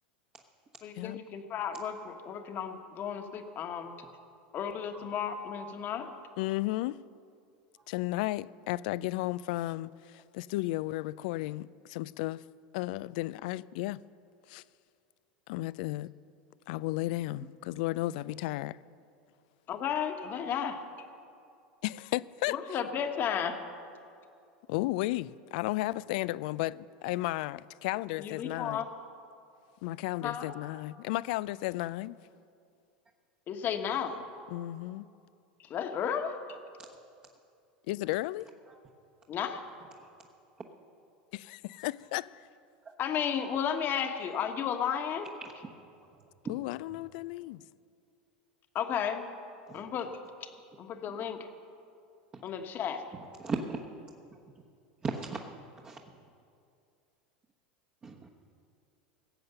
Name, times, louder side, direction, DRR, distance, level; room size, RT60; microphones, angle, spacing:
voice 1, 0.8-3.9 4.5-6.1 19.7-20.9 22.5-23.7 28.2-28.9 30.2-30.5 33.5-34.3 35.6-36.4 39.3-39.6 43.0-45.3 48.7-49.3 49.7-50.5 50.8-51.5 52.4-53.0, left 8 dB, 45° left, 1.3 m, -33 dB
voice 2, 6.4-7.0 7.9-12.4 12.7-14.0 14.5-14.6 15.5-16.1 16.7-18.8 21.8-22.5 24.7-28.8 29.8-32.2 34.5-35.1 37.9-38.5 41.3-42.5 46.5-47.6, left 17 dB, 65° left, 0.3 m, -34 dB
voice 3, 53.4-53.8 55.0-55.4 55.8-56.0 58.0-58.3, right 4 dB, 25° right, 1.1 m, -34 dB
17.0 x 7.8 x 6.8 m
hypercardioid pair, 95°, 5 cm